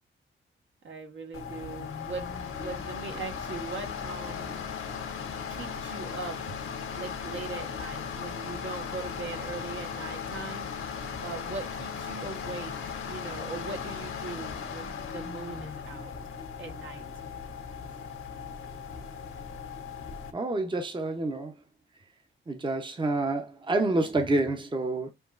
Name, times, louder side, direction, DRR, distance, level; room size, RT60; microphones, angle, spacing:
voice 1, 0.8-4.7 5.5-6.4 6.9-10.7 11.2-12.7 13.1-16.1 16.6-17.0, right 4 dB, 65° right, 1.4 m, -40 dB
sound 1, 1.3-20.3, left 6 dB, 90° left, 1.3 m, -37 dB
voice 2, 20.3-21.6 22.5-25.1, right 2 dB, 20° right, 0.8 m, -28 dB
6.9 x 3.0 x 2.5 m
cardioid pair, 90°, 21 cm